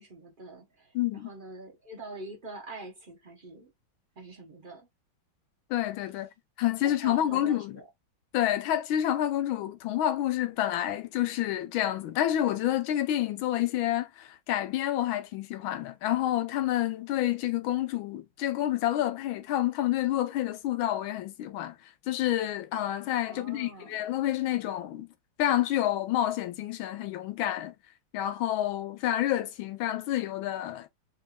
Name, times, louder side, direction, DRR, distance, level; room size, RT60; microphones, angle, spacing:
voice 1, 0.0-3.7 4.2-4.9 6.8-7.9 23.3-23.9, right 2 dB, 60° right, 0.5 m, -45 dB
voice 2, 0.9-1.3 5.7-6.3 6.6-7.8 8.3-21.8 22.1-25.1 25.4-27.7 28.1-30.9, left 12 dB, 85° left, 1.5 m, -28 dB
4.3 x 3.8 x 2.2 m
omnidirectional pair, 2.1 m